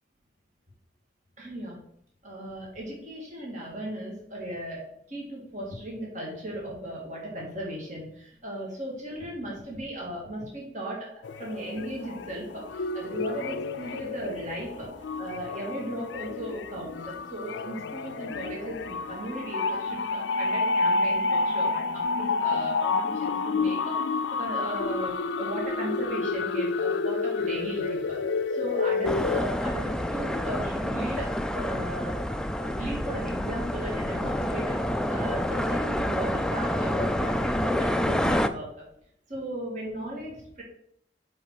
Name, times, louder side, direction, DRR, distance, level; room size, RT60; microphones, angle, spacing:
voice 1, 1.4-1.8 2.2-11.1 11.4-28.2 28.5-32.2 32.6-38.8 39.3-40.6, right 1 dB, 45° right, -3 dB, 2.0 m, -36 dB
sound 1, 11.2-29.4, left 3 dB, 85° left, 0.4 m, -29 dB
sound 2, 29.0-38.5, left 1 dB, 5° left, 0.3 m, -28 dB
5.5 x 5.4 x 5.9 m, 0.72 s
head